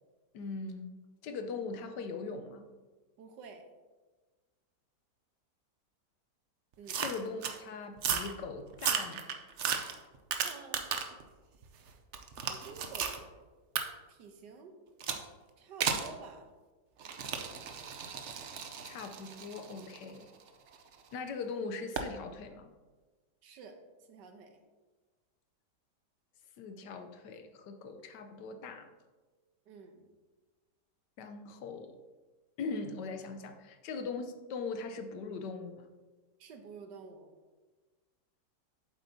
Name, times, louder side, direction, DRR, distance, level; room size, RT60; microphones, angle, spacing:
voice 1, 0.3-0.9 1.2-2.7 7.0-9.3 18.8-20.3 21.1-22.7 26.6-28.9 31.2-32.0 32.6-35.9, left 4 dB, 80° left, 7 dB, 1.3 m, -40 dB
voice 2, 3.2-3.6 6.8-7.0 10.4-11.2 12.5-13.3 14.1-14.7 15.6-16.5 23.4-23.8 24.1-24.6 29.7-30.1 36.4-37.3, right 5 dB, 85° right, 5 dB, 1.5 m, -50 dB
golpes vaso plastico, 6.9-7.6 8.0-8.3 8.7-11.2 11.6-13.2 13.8-13.9 15.0-15.3 15.8-16.1 17.0-21.0 22.0-22.1, right 7 dB, 60° right, 0.8 m, -35 dB
8.7 x 7.4 x 2.7 m, 1.3 s
omnidirectional pair, 1.8 m